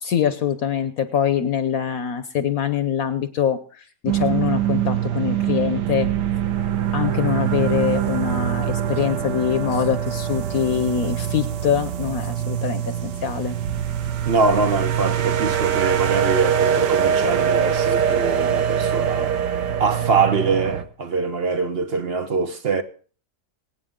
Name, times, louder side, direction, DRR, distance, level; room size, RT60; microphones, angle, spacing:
voice 1, 0.0-3.6 4.0-6.1 6.9-13.5, left 8 dB, 60° left, 1.2 m, -24 dB
sound 1, 4.1-20.8, right 9 dB, 90° right, 1.6 m, -23 dB
voice 2, 14.3-19.3 19.8-22.8, right 4 dB, 45° right, 0.9 m, -23 dB
24.5 x 9.1 x 3.7 m
omnidirectional pair, 1.8 m